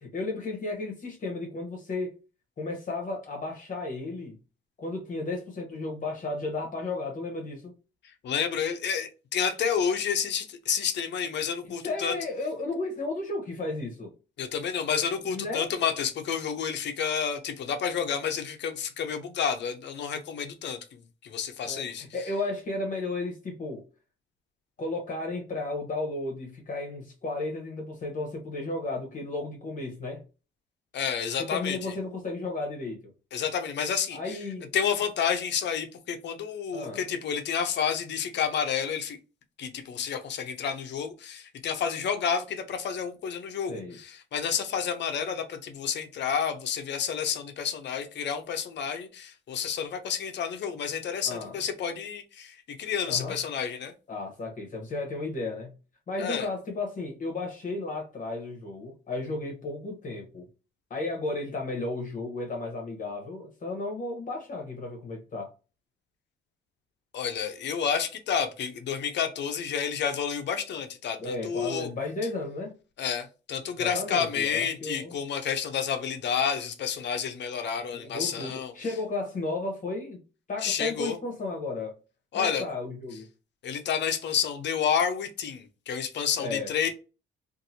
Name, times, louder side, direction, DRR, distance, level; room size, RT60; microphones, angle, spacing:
voice 1, 0.0-2.1 2.6-4.4 4.8-7.7 11.8-14.1 15.3-15.7 21.6-23.8 24.8-30.2 31.4-33.1 34.1-34.7 36.7-37.0 43.7-44.0 51.3-51.6 53.1-53.3 54.1-55.7 56.1-60.5 60.9-65.5 71.2-72.7 73.8-75.1 77.9-80.2 80.5-81.9 82.3-83.3 86.4-86.7, left 2 dB, 40° left, 1.0 m, -34 dB
voice 2, 8.2-12.2 14.4-20.8 21.2-22.1 30.9-31.9 33.3-34.4 34.7-39.2 39.6-53.9 56.2-56.5 67.1-71.9 73.0-78.7 80.6-81.2 82.3-82.6 83.6-86.9, left 7 dB, 60° left, 0.7 m, -30 dB
2.7 x 2.6 x 2.6 m
cardioid pair, 90°, 20 cm